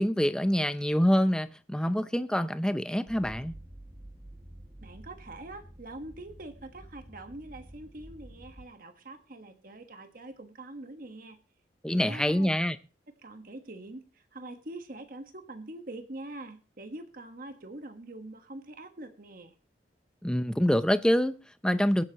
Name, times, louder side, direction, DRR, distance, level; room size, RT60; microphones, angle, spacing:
voice 1, 0.0-3.6 11.8-12.8 20.2-22.0, equal, 5° left, 0.6 m, -26 dB
sound 1, 3.1-8.7, right 1 dB, 20° right, 1.4 m, -49 dB
voice 2, 4.8-11.4 11.9-12.5 13.2-19.5, right 2 dB, 50° right, 1.4 m, -44 dB
23.0 x 7.9 x 3.0 m
head